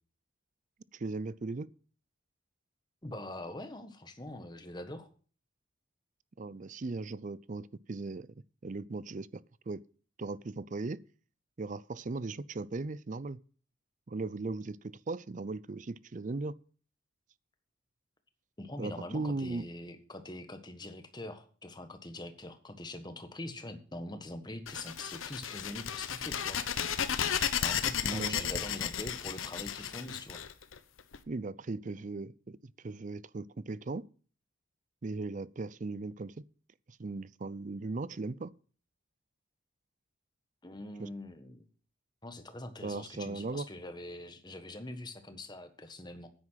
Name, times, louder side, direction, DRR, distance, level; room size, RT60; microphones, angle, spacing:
voice 1, 0.9-1.7 6.4-8.3 8.6-9.4 9.7-9.8 10.2-11.0 11.6-13.4 14.1-16.5 18.8-19.6 28.1-28.4 31.3-34.0 35.0-36.4 36.9-38.5 41.0-41.1 42.8-43.7, right 3 dB, 40° right, 0.5 m, -38 dB
voice 2, 3.0-5.1 18.6-26.6 27.6-30.4 40.6-41.6 42.2-46.3, left 1 dB, 20° left, 1.4 m, -43 dB
sound 1, 24.7-31.2, left 8 dB, 80° left, 1.0 m, -34 dB
9.7 x 9.6 x 5.7 m
head